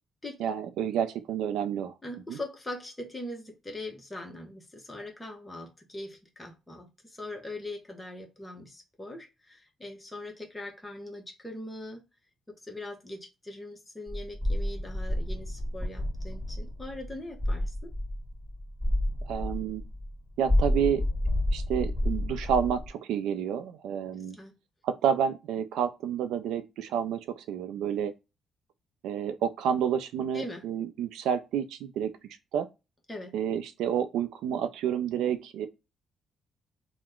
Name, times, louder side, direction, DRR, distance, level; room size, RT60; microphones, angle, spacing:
voice 1, 0.4-1.9 2.3-2.4 19.3-19.8 20.4-21.0 21.5-24.4 24.8-28.1 29.0-32.7 33.3-35.7, right 8 dB, 85° right, 0.4 m, -29 dB
voice 2, 2.0-12.0 12.5-17.9 24.3-24.6 30.3-30.6 33.1-33.3, left 1 dB, 15° left, 0.9 m, -41 dB
sound 1, 14.1-20.2 20.4-22.9, left 1 dB, 10° right, 1.8 m, -30 dB
2.9 x 2.1 x 3.5 m
cardioid pair, 90°, 0 cm